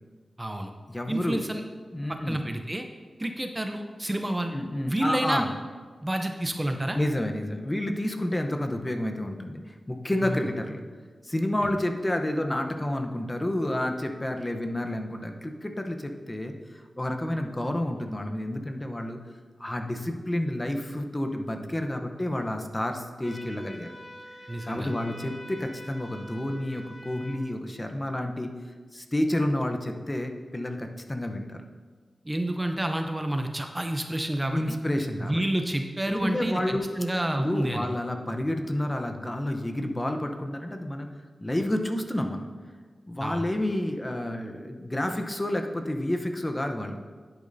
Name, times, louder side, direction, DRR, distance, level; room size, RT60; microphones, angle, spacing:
voice 1, 0.4-0.7 1.1-1.6 2.1-2.9 3.2-4.5 4.9-5.4 6.0-7.0 10.2-10.4 24.5-24.9 32.3-34.8 35.2-37.9 43.2-43.4, right 1 dB, 15° right, 5 dB, 0.6 m, -29 dB
voice 2, 0.9-1.4 1.9-2.5 4.5-5.5 6.9-10.8 11.2-19.2 19.6-23.9 24.3-24.4 24.6-28.5 28.9-31.6 34.5-35.4 36.1-36.9 37.4-41.1 41.4-42.5 43.1-47.0, left 1 dB, 20° left, 4 dB, 0.8 m, -30 dB
sound 1, 23.2-27.4, equal, 60° left, 1.7 m, -46 dB
10.5 x 8.6 x 2.7 m, 1.5 s
wide cardioid pair, 70°, 0 cm